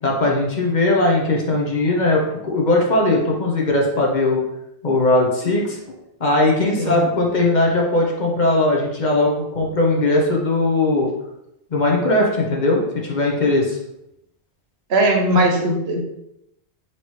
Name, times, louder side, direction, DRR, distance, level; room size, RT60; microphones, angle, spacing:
voice 1, 0.0-4.4 4.8-5.8 6.2-11.1 11.7-13.8, left 2 dB, 50° left, -1 dB, 0.8 m, -19 dB
voice 2, 14.9-16.1, right 1 dB, 75° right, 2 dB, 1.0 m, -19 dB
4.2 x 3.2 x 3.0 m, 0.83 s
omnidirectional pair, 1.1 m